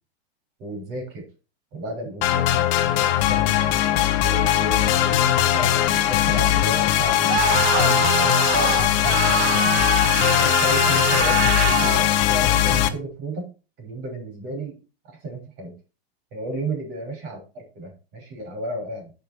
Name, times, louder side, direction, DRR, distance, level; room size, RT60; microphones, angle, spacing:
voice 1, 0.6-1.3 1.7-3.6 4.2-9.8 10.2-13.5 13.8-14.8 15.2-15.7 16.3-19.1, right 1 dB, 35° right, 2 dB, 6.1 m, -33 dB
sound 1, 2.2-12.9, left 12 dB, 45° left, 1.2 m, -20 dB
Screaming, 7.3-12.1, right 15 dB, 80° right, 0.5 m, -25 dB
14.0 x 5.5 x 4.5 m, 0.33 s
supercardioid pair, 155°, 31 cm